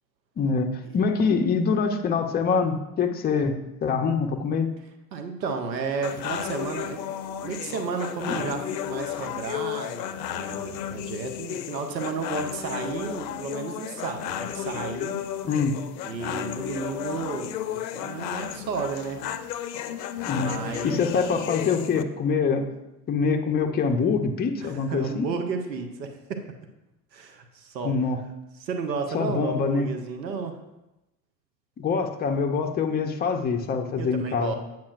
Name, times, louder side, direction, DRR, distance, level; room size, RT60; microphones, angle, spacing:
voice 1, 0.4-4.7 8.2-8.4 15.4-15.8 20.2-20.5 20.8-22.7 23.1-25.3 27.8-28.2 29.1-29.9 31.8-34.5, left 5 dB, 20° left, 5 dB, 0.5 m, -25 dB
voice 2, 5.1-7.0 7.4-15.2 16.0-19.2 20.4-21.1 24.6-26.4 27.1-27.9 28.6-30.6 34.0-34.6, right 5 dB, 85° right, 6 dB, 0.8 m, -32 dB
sound 1, 6.0-22.0, left 10 dB, 80° left, 0.5 m, -33 dB
8.4 x 5.9 x 2.4 m, 0.96 s
hypercardioid pair, 70°, 49 cm